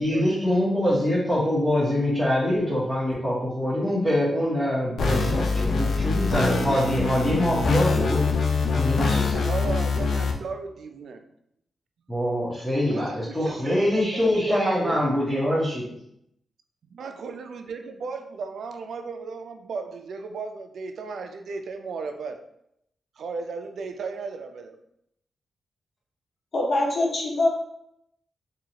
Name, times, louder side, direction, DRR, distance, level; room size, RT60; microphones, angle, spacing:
voice 1, 0.0-8.2 8.7-9.4 12.1-15.9, left 1 dB, 5° left, -8 dB, 1.1 m, -24 dB
sound 1, 5.0-10.3, left 4 dB, 70° left, 0.5 m, -24 dB
voice 2, 9.3-11.3 12.9-15.0 16.9-22.4 23.2-24.8, right 4 dB, 75° right, 6 dB, 0.4 m, -35 dB
voice 3, 26.5-27.5, left 2 dB, 50° left, -1 dB, 1.0 m, -23 dB
4.5 x 2.4 x 2.8 m, 0.74 s
cardioid pair, 100°, 0 cm